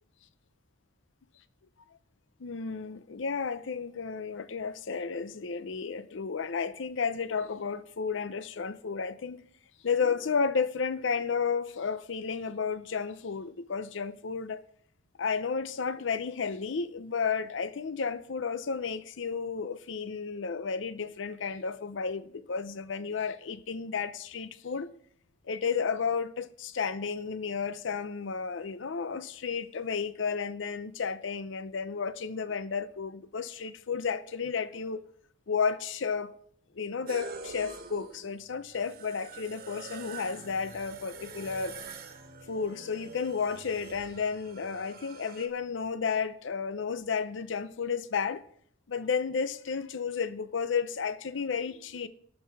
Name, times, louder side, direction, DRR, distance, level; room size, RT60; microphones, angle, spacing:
voice 1, 2.4-9.4 9.8-14.6 15.2-24.9 25.5-35.0 35.5-36.3 36.8-41.8 42.5-48.4 48.9-52.1, left 5 dB, 70° left, 0.6 m, -32 dB
sound 1, 37.1-45.5, right 3 dB, 50° right, 1.4 m, -45 dB
18.0 x 6.5 x 4.6 m
head